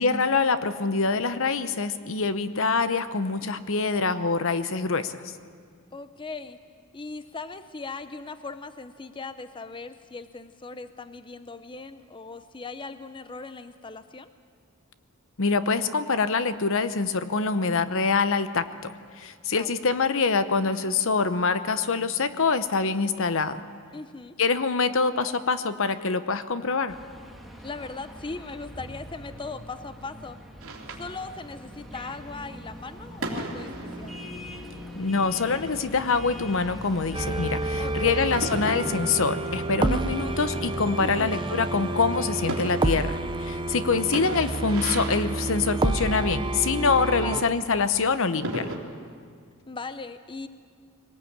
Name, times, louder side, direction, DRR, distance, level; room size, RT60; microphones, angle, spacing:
voice 1, 0.0-5.2 15.4-18.9 19.2-23.6 24.4-27.0 35.0-48.7, left 4 dB, 65° left, 12 dB, 0.9 m, -25 dB
voice 2, 5.9-6.6 6.9-14.3 19.5-19.8 23.9-24.4 27.6-30.4 31.0-34.2 37.8-38.2 41.0-41.4 44.0-44.2 47.2-47.5 49.7-50.5, left 3 dB, 25° left, 11 dB, 0.6 m, -39 dB
sound 1, 26.9-42.6, equal, ahead, 1.9 m, -41 dB
sound 2, 30.6-48.8, right 2 dB, 70° right, 3.3 m, -40 dB
sound 3, 37.1-47.4, right 2 dB, 20° right, 0.7 m, -29 dB
22.5 x 19.0 x 8.8 m, 2.1 s
head